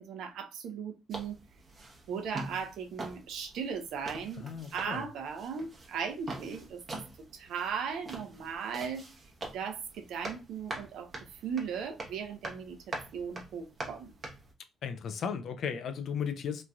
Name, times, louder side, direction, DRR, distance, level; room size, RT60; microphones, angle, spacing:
voice 1, 0.0-1.4 2.1-4.4 4.7-6.8 7.3-9.0 9.5-14.1, right 6 dB, 80° right, 0.6 m, -37 dB
sound 1, 1.1-14.5, right 2 dB, 40° right, 0.9 m, -44 dB
voice 2, 4.4-5.1 14.8-16.6, left 7 dB, 65° left, 0.4 m, -35 dB
3.1 x 2.5 x 2.2 m
cardioid pair, 90°, 0 cm